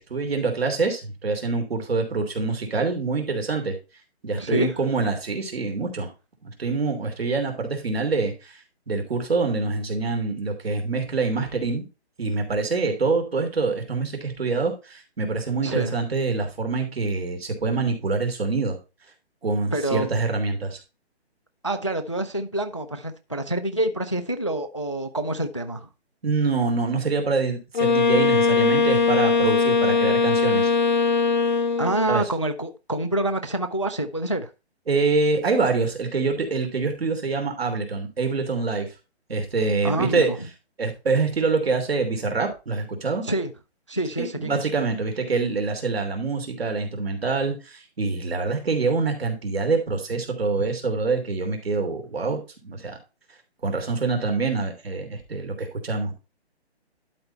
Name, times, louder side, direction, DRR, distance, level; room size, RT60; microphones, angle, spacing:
voice 1, 0.0-3.7 4.2-6.1 6.4-11.8 12.2-18.8 19.4-20.8 26.2-30.7 32.1-32.2 34.9-38.9 39.3-40.3 40.8-43.2 44.2-53.0 53.6-56.1, right 4 dB, 65° right, 3.1 m, -25 dB
voice 2, 4.4-4.7 15.6-15.9 19.7-20.1 21.6-25.9 31.8-34.5 39.8-40.4 43.2-43.5 43.9-44.7 50.6-50.7, right 1 dB, 30° left, 0.4 m, -26 dB
Wind instrument woodwind instrument, 27.7-32.1, left 4 dB, 45° left, 0.8 m, -20 dB
11.5 x 4.3 x 4.3 m
hypercardioid pair, 175°, 33 cm